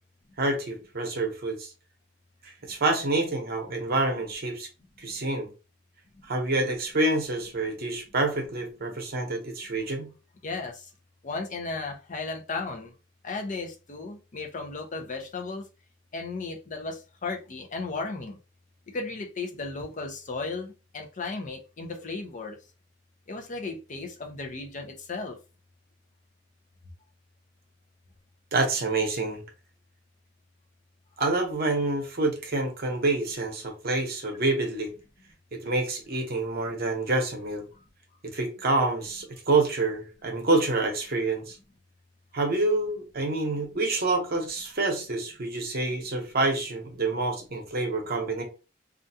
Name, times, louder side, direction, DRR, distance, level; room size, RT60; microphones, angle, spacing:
voice 1, 0.4-1.7 2.6-4.7 5.0-5.5 6.3-10.1 28.5-29.4 31.2-34.9 35.5-37.6 38.3-41.6 42.3-48.4, right 2 dB, 55° right, 0.8 m, -27 dB
voice 2, 10.4-10.9 11.2-12.9 13.2-15.6 16.1-18.3 18.9-22.6 23.3-25.4, left 3 dB, 40° left, 0.5 m, -35 dB
2.4 x 2.2 x 2.7 m
head